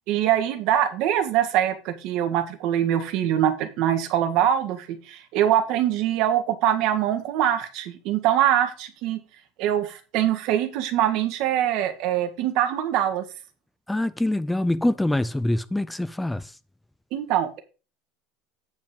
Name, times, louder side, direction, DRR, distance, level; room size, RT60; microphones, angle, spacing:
voice 1, 0.1-9.2 9.6-13.2 17.1-17.6, right 11 dB, 55° right, 1.7 m, -23 dB
voice 2, 13.9-16.6, left 1 dB, 5° left, 0.4 m, -25 dB
9.1 x 5.3 x 5.1 m
cardioid pair, 160°, 0 cm